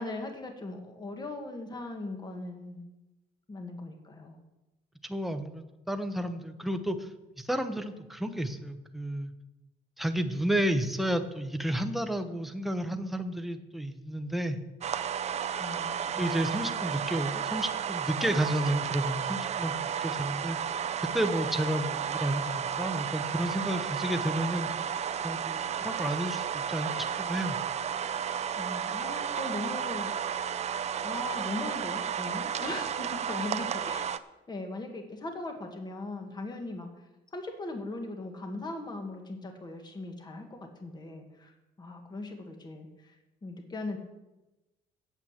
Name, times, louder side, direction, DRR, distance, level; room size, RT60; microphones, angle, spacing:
voice 1, 0.0-2.8 3.5-4.4 15.6-16.4 28.2-30.6 31.0-34.1 34.5-37.1 37.3-43.2 43.4-44.0, left 2 dB, 25° left, 4 dB, 1.8 m, -39 dB
voice 2, 5.0-7.1 7.4-9.3 10.0-14.6 16.2-20.6 21.0-24.7 25.2-27.6, right 1 dB, ahead, 7 dB, 1.0 m, -31 dB
sound 1, 14.8-34.2, right 8 dB, 40° right, 0.6 m, -33 dB
8.9 x 8.4 x 7.4 m, 1.0 s
cardioid pair, 110°, 17 cm